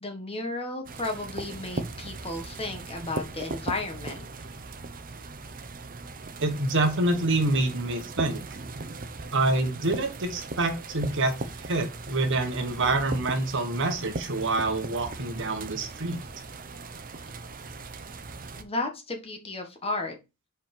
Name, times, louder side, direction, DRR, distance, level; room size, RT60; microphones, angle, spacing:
voice 1, 0.0-4.3 18.6-20.1, left 2 dB, 25° left, 4 dB, 1.3 m, -33 dB
sound 1, 0.8-18.6, right 3 dB, 40° right, 0.7 m, -39 dB
voice 2, 6.4-8.4 9.3-16.2, right 2 dB, 60° right, 6 dB, 1.4 m, -26 dB
5.2 x 4.5 x 5.2 m, 0.26 s
head